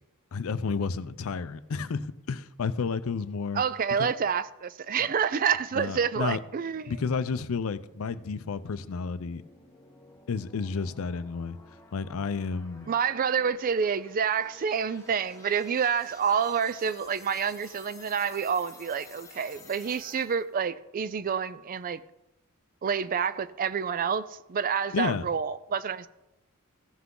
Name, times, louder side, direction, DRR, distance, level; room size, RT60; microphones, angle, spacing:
voice 1, 0.3-3.6 4.0-4.1 5.7-6.4 6.9-9.4 10.3-11.6 11.9-12.9 24.9-25.3, left 5 dB, 70° left, 0.5 m, -31 dB
voice 2, 3.5-6.9 12.9-22.0 22.8-26.1, right 7 dB, 40° right, 0.4 m, -28 dB
sound 1, 6.5-20.5, left 3 dB, 15° left, 1.0 m, -53 dB
15.0 x 5.8 x 3.8 m
head